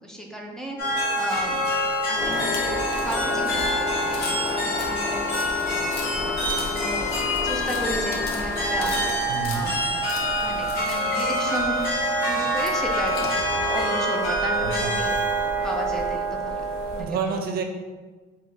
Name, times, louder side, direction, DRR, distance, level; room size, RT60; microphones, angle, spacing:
voice 1, 0.0-0.8 1.2-1.6 2.1-4.0 4.4-5.3 5.7-9.0 9.5-9.8 10.3-11.8 12.2-13.1 13.5-15.2 15.6-16.6 16.9-17.4, equal, 5° left, 0 dB, 0.6 m, -34 dB
sound 1, 0.8-17.0, equal, 90° left, 1.4 m, -26 dB
sound 2, 2.1-13.8, left 3 dB, 70° left, 0.7 m, -32 dB
voice 2, 9.3-9.8 14.6-14.9 17.0-17.6, right 5 dB, 65° right, 4 dB, 0.6 m, -29 dB
3.7 x 2.8 x 3.9 m, 1.3 s
cardioid pair, 110°, 17 cm